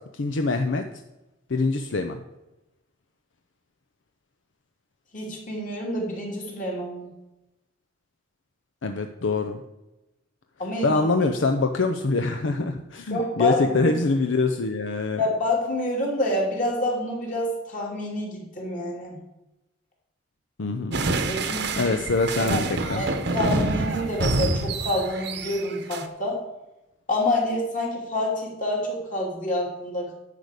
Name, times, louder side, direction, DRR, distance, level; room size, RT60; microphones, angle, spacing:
voice 1, 0.2-0.8 1.5-2.2 8.8-9.6 10.8-15.2 20.6-21.0 21.8-23.0, left 3 dB, 75° left, 6 dB, 0.7 m, -24 dB
voice 2, 5.1-7.1 10.6-11.0 13.1-13.9 15.2-19.2 21.3-21.9 22.4-22.6 23.0-26.4 27.1-30.1, left 1 dB, 45° left, -2 dB, 3.0 m, -27 dB
sound 1, 20.9-26.0, right 2 dB, 60° right, 0.9 m, -27 dB
10.5 x 5.0 x 8.2 m, 0.96 s
head